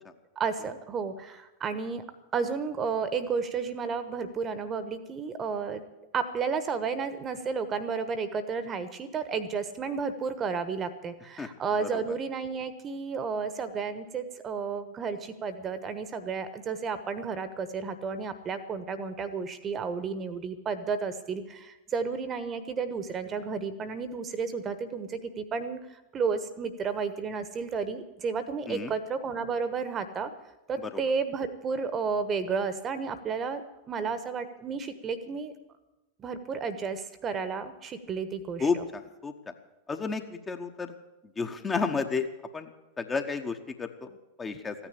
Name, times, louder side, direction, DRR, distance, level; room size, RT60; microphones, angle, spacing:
voice 1, 0.4-2.0 2.3-5.8 6.1-30.3 30.7-33.6 33.9-35.5 36.2-38.8, right 5 dB, 25° right, 12 dB, 1.2 m, -32 dB
voice 2, 38.6-39.5 39.9-40.9 41.4-42.3 42.5-42.7 43.0-44.1 44.4-44.7, left 4 dB, 15° left, 6 dB, 1.1 m, -31 dB
15.0 x 9.8 x 8.5 m, 0.99 s
figure-of-eight pair, 90°, 0 cm